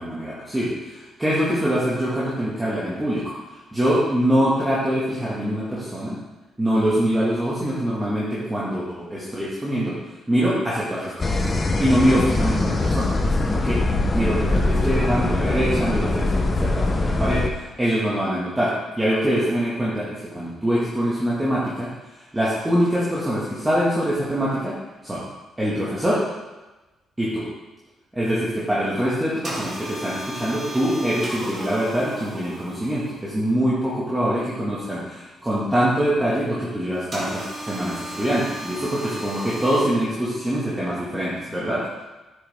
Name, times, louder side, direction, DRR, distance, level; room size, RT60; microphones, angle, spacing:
voice 1, 0.0-3.3 3.7-6.2 6.6-10.0 10.3-11.3 11.8-13.8 14.1-24.8 25.0-25.2 25.6-26.2 27.2-27.5 28.1-41.9, equal, 15° right, -8 dB, 2.2 m, -24 dB
sound 1, 11.2-17.5, left 2 dB, 30° left, 1.0 m, -22 dB
sound 2, 29.4-33.4 37.1-39.8, right 1 dB, 40° right, 3.0 m, -34 dB
9.3 x 7.1 x 3.8 m, 1.1 s
cardioid pair, 90°, 0 cm